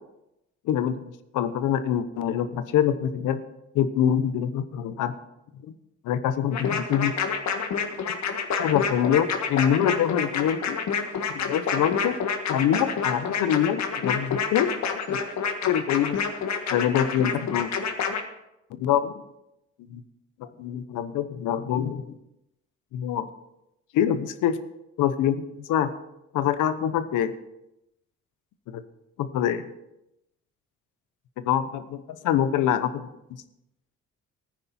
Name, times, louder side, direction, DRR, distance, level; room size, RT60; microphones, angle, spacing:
voice 1, 0.7-1.0 1.3-3.4 3.7-5.1 5.7-5.8 6.0-7.1 8.1-8.2 8.6-10.8 11.3-12.2 12.5-14.7 15.1-15.2 15.6-16.2 16.7-17.7 18.8-19.1 19.9-20.0 20.4-22.1 22.9-23.3 23.9-24.6 25.0-25.9 26.3-27.3 28.7-28.8 29.2-29.6 31.4-33.1, left 9 dB, 90° left, 12 dB, 1.0 m, -25 dB
sound 1, 6.5-18.2, left 6 dB, 65° left, 1.7 m, -28 dB
14.5 x 9.5 x 4.3 m, 0.88 s
cardioid pair, 90°, 30 cm